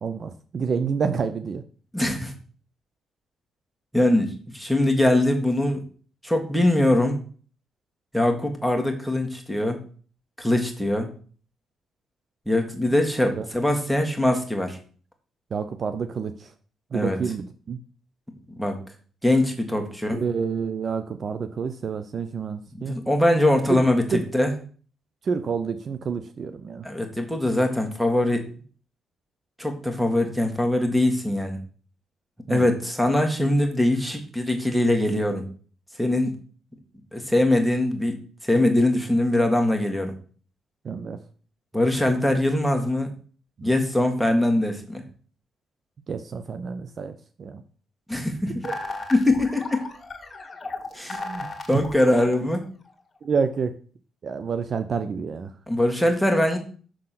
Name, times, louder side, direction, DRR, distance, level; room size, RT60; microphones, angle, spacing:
voice 1, 0.0-1.6 13.4-13.5 15.5-16.5 16.9-17.8 20.1-23.0 23.7-23.8 24.1-24.2 25.2-26.8 32.5-32.7 40.8-41.2 43.6-43.7 46.1-47.1 47.4-47.6 48.6-48.7 51.1-51.8 53.2-53.8 54.2-55.5, right 5 dB, 50° right, 9 dB, 0.5 m, -28 dB
voice 2, 1.9-2.3 3.9-5.8 6.2-7.2 8.1-9.8 10.4-11.1 12.5-14.8 16.9-17.2 18.6-18.8 19.2-20.2 22.7-24.0 24.3-24.5 26.8-28.5 29.6-31.6 32.5-35.4 36.0-36.3 37.1-40.1 41.7-43.1 43.6-45.0 48.1-48.5 49.1-49.8 50.9-51.2 51.7-52.6 55.7-56.6, left 1 dB, ahead, 4 dB, 1.6 m, -22 dB
sound 1, 48.6-52.9, left 3 dB, 35° left, 1.7 m, -35 dB
6.4 x 3.9 x 5.8 m, 0.42 s
cardioid pair, 80°, 0 cm